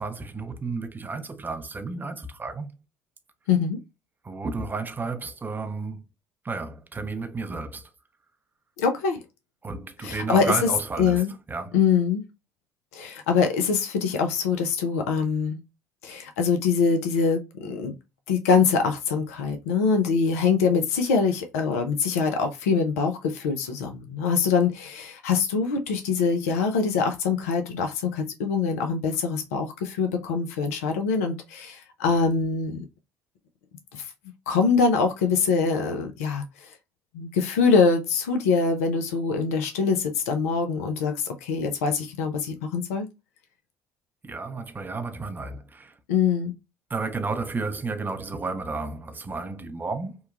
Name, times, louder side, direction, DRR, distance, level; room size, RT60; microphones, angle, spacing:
voice 1, 0.0-2.7 4.2-6.0 6.4-7.9 9.6-11.8 44.2-46.0 46.9-50.2, right 3 dB, 25° right, 0.5 m, -32 dB
voice 2, 3.5-3.8 8.8-9.2 10.0-10.5 11.0-11.3 11.7-12.2 12.9-15.6 16.0-17.9 18.3-32.8 33.9-34.1 34.5-36.7 37.1-43.1 46.1-46.5, left 5 dB, 85° left, 0.5 m, -24 dB
2.9 x 2.2 x 2.3 m
hypercardioid pair, 60°, 8 cm